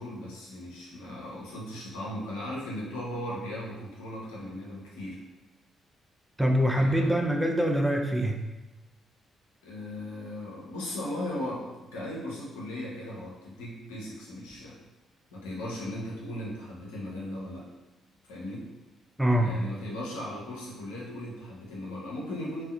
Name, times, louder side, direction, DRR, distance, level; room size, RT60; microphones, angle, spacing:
voice 1, 0.0-5.2 6.8-7.3 9.6-14.8 15.3-17.7 18.2-18.6 19.4-22.6, left 1 dB, 80° left, -5 dB, 0.6 m, -37 dB
voice 2, 6.4-8.4 19.2-19.5, equal, 5° right, 1 dB, 0.4 m, -24 dB
2.6 x 2.1 x 2.3 m, 1.1 s
hypercardioid pair, 45°, 0 cm